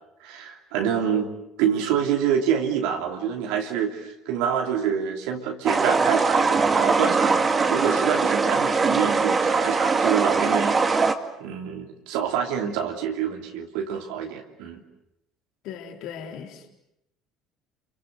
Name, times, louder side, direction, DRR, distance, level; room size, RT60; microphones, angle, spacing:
voice 1, 0.2-1.3 1.6-11.1 11.4-14.8, right 8 dB, 65° right, 3 dB, 3.0 m, -27 dB
sound 1, 5.7-11.1, right 4 dB, 30° right, 2.2 m, -21 dB
voice 2, 15.6-16.7, left 8 dB, 60° left, 4 dB, 3.9 m, -38 dB
29.0 x 24.0 x 8.1 m, 0.85 s
hypercardioid pair, 60°, 0 cm